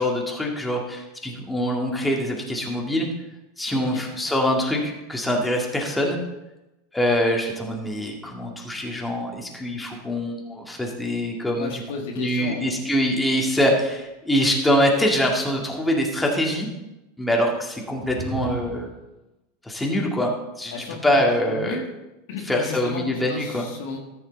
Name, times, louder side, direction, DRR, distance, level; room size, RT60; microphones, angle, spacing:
voice 1, 0.0-3.1 3.6-6.2 6.9-11.8 12.2-16.7 17.2-18.9 19.6-21.8 22.5-23.7, equal, 5° left, -1 dB, 2.2 m, -24 dB
voice 2, 3.7-4.1 11.6-13.0 20.7-21.9 22.3-24.0, left 4 dB, 65° left, 2 dB, 1.7 m, -34 dB
sound 1, 17.9-19.1, right 4 dB, 40° right, 3.3 m, -35 dB
14.0 x 6.6 x 4.1 m, 0.98 s
hypercardioid pair, 90°, 0 cm